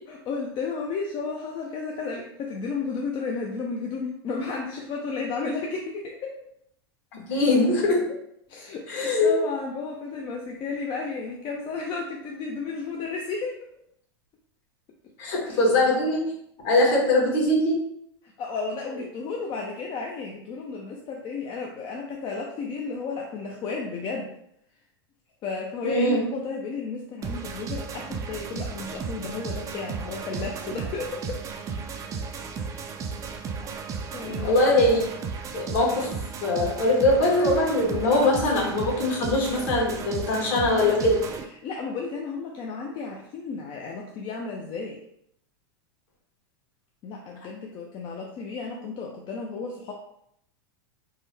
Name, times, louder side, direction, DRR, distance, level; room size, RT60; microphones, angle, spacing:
voice 1, 0.1-6.4 8.5-13.6 15.4-15.6 18.4-24.3 25.4-31.4 34.1-34.6 41.6-45.0 47.0-49.9, left 4 dB, 35° left, 0 dB, 0.4 m, -33 dB
voice 2, 7.1-8.1 8.9-9.3 15.2-16.3 16.6-17.8 25.8-26.2 34.4-35.0 35.5-36.1 36.4-41.2, left 2 dB, 55° left, -2 dB, 1.3 m, -22 dB
sound 1, 27.2-41.4, right 5 dB, 25° right, 0.4 m, -34 dB
3.5 x 2.1 x 3.2 m, 0.74 s
hypercardioid pair, 115°, 13 cm